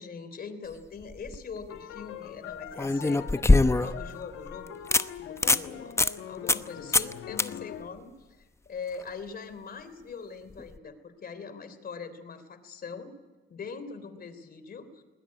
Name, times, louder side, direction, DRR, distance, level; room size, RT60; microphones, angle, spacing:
voice 1, 0.0-4.9 5.2-6.0 6.2-13.1 13.5-15.0, left 5 dB, 50° left, 11 dB, 3.4 m, -42 dB
sound 1, 1.0-1.4 2.8-4.1 4.5-4.6 4.9-5.0 5.4-5.6 6.0-6.1 6.5-6.7 6.9-7.1 7.4-7.5 10.6-10.7, left 2 dB, 15° left, 0.8 m, -22 dB
sound 2, 1.7-7.9, left 9 dB, 75° left, 1.3 m, -43 dB
20.0 x 19.5 x 9.6 m, 1.2 s
cardioid pair, 90°, 20 cm